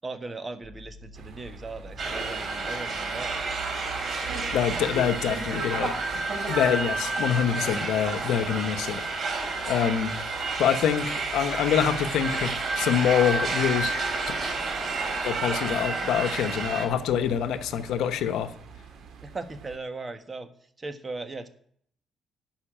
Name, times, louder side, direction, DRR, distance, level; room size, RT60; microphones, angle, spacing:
voice 1, 0.0-3.4 19.2-20.5 20.8-21.5, right 3 dB, 30° right, 9 dB, 1.4 m, -38 dB
sound 1, 0.6-18.6, left 3 dB, 90° right, 6.2 m, -49 dB
sound 2, 1.1-19.8, right 7 dB, 75° right, 2.1 m, -46 dB
sound 3, 2.0-16.9, right 3 dB, 55° right, 4.0 m, -30 dB
voice 2, 4.5-6.2 6.5-9.0 9.7-10.1 10.6-13.9 15.2-18.5, left 9 dB, 85° left, 9 dB, 1.0 m, -25 dB
12.0 x 5.8 x 8.8 m, 0.64 s
cardioid pair, 90°, 0 cm